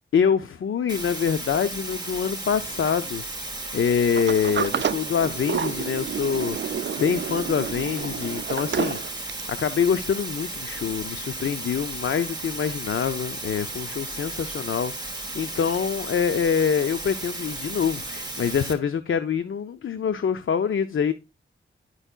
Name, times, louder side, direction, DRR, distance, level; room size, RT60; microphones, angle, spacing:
voice 1, 0.1-21.1, left 7 dB, 75° left, 0.6 m, -25 dB
sound 1, 0.9-18.7, right 2 dB, 20° right, 3.0 m, -34 dB
Sliding door, 4.2-9.6, right 7 dB, 60° right, 0.5 m, -30 dB
11.5 x 4.5 x 2.3 m
wide cardioid pair, 70°, 21 cm